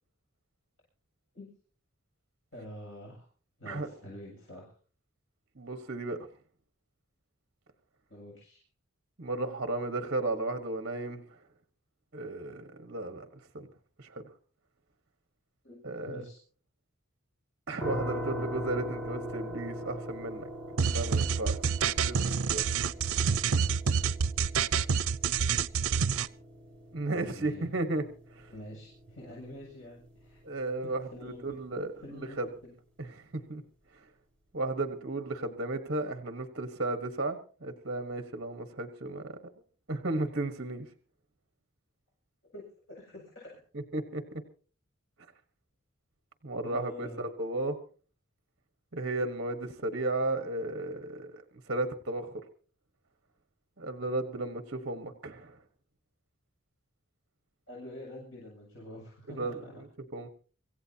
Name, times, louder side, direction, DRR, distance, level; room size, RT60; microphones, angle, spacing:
voice 1, 2.5-3.3 3.6-4.6 8.1-8.6 15.6-15.8 16.0-16.4 27.0-27.7 28.5-30.4 30.8-31.4 32.0-32.4 42.5-42.6 42.9-43.5 46.6-47.2 57.7-59.7, left 1 dB, 65° left, -3 dB, 7.2 m, -46 dB
voice 2, 5.6-6.2 9.2-11.2 12.1-13.7 14.0-14.2 15.8-16.2 17.7-20.5 20.8-21.6 22.1-22.6 26.9-28.0 28.3-28.5 30.4-32.5 33.0-33.6 34.5-39.3 39.9-40.9 43.9-44.4 46.4-47.8 48.9-51.4 51.7-52.3 53.8-55.6 59.3-59.9 60.1-60.3, right 2 dB, 55° right, 7 dB, 1.4 m, -34 dB
sound 1, 17.8-30.7, equal, 5° left, 4.8 m, -41 dB
sound 2, 20.8-26.3, right 6 dB, 85° right, 0.6 m, -27 dB
26.0 x 15.5 x 2.9 m, 0.40 s
head